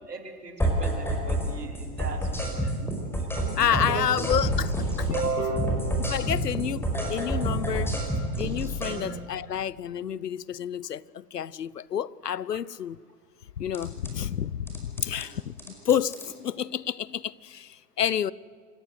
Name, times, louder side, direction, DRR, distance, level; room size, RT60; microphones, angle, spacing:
voice 1, 0.1-3.0 3.4-4.3 5.1-5.8 8.8-9.1, right 4 dB, 85° right, 3.2 m, -35 dB
sound 1, 0.6-1.5 1.7-5.3 5.6-8.9 13.7-14.1 14.7-15.3 15.6-16.3, right 1 dB, 5° left, 5.0 m, -28 dB
voice 2, 3.6-4.7 5.0-5.5 6.0-8.0 8.4-13.0 13.6-18.3, left 9 dB, 85° left, 0.7 m, -29 dB
27.5 x 15.0 x 8.1 m
figure-of-eight pair, 100°, 47 cm